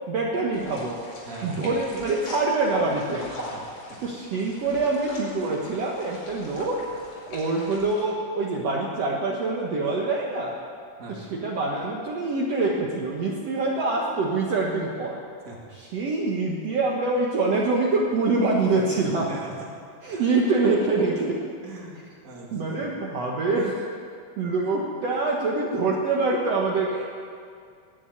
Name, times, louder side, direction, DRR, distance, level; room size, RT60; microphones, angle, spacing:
voice 1, 0.1-1.0 1.4-3.3 4.0-6.8 7.3-10.6 11.1-15.2 15.7-19.4 20.0-21.4 22.5-23.8 24.4-27.0, right 3 dB, 60° right, -2 dB, 2.2 m, -25 dB
sound 1, 0.5-8.0, left 1 dB, 80° left, 6.6 m, -42 dB
voice 2, 1.2-1.7 3.5-3.6 3.9-4.0 11.0-11.3 15.5-15.6 19.2-19.7 20.1-20.3 21.6-22.9, right 3 dB, 30° right, -2 dB, 2.5 m, -41 dB
20.5 x 7.2 x 9.7 m, 2.3 s
omnidirectional pair, 3.6 m